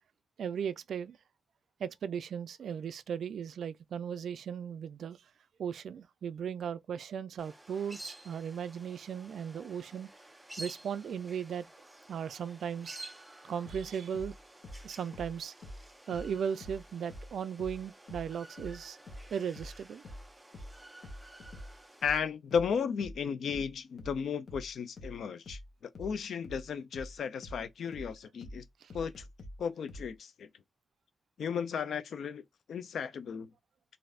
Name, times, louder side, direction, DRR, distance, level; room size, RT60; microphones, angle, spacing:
voice 1, 0.4-1.2 1.8-5.2 5.6-10.1 10.6-11.7 12.1-13.0 13.4-14.3 14.8-15.5 16.1-19.0 19.3-20.0 28.8-28.9, right 7 dB, 75° right, 0.3 m, -37 dB
sound 1, 7.4-22.2, right 1 dB, 10° right, 0.4 m, -52 dB
sound 2, 13.7-16.8 17.1-30.1, left 1 dB, 60° left, 0.9 m, -46 dB
voice 2, 22.0-28.6 28.9-29.2 29.6-30.5 31.4-32.4 32.7-33.5, left 7 dB, 75° left, 0.5 m, -34 dB
3.2 x 2.6 x 2.4 m
wide cardioid pair, 175°, 0 cm